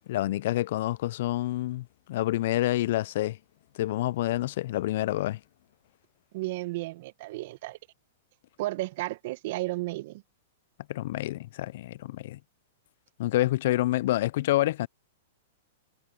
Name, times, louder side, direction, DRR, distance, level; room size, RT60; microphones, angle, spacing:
voice 1, 0.1-3.4 3.8-5.4 10.9-12.4 13.2-14.9, left 15 dB, 60° left, 0.5 m, -28 dB
voice 2, 6.3-7.8 8.6-10.2, right 19 dB, 55° right, 1.5 m, -33 dB
hypercardioid pair, 115°, 0 cm